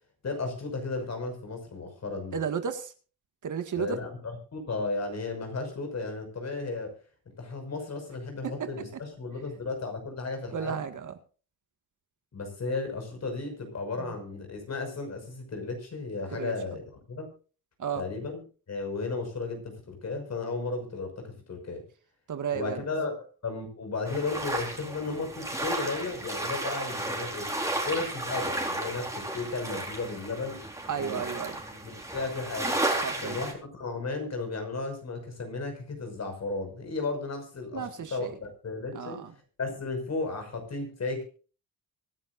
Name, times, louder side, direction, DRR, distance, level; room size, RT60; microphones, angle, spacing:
voice 1, 0.2-2.4 3.8-6.9 7.4-10.8 12.3-17.3 17.9-18.4 18.7-21.8 22.5-27.5 27.8-30.6 31.0-31.3 31.7-32.8 33.2-39.2 39.6-41.2, left 3 dB, 45° left, 5 dB, 5.9 m, -34 dB
voice 2, 2.3-2.9 3.4-4.0 10.5-11.2 16.3-16.5 17.8-18.0 22.3-22.8 30.9-31.5 33.0-33.4 37.7-38.3 38.9-39.3, right 7 dB, 55° right, 8 dB, 1.9 m, -33 dB
sound 1, 24.1-33.5, right 2 dB, 10° right, 4.3 m, -33 dB
24.5 x 11.0 x 2.6 m, 0.37 s
cardioid pair, 110°, 37 cm